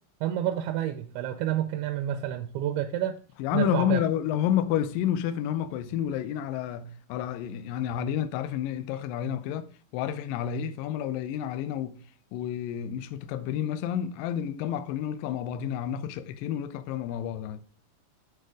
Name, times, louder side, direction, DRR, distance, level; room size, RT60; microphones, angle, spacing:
voice 1, 0.2-3.2 3.5-4.0, right 11 dB, 85° right, 2.5 m, -29 dB
voice 2, 3.4-12.0 12.3-17.6, left 10 dB, 80° left, 2.1 m, -30 dB
6.5 x 4.3 x 4.9 m
omnidirectional pair, 4.5 m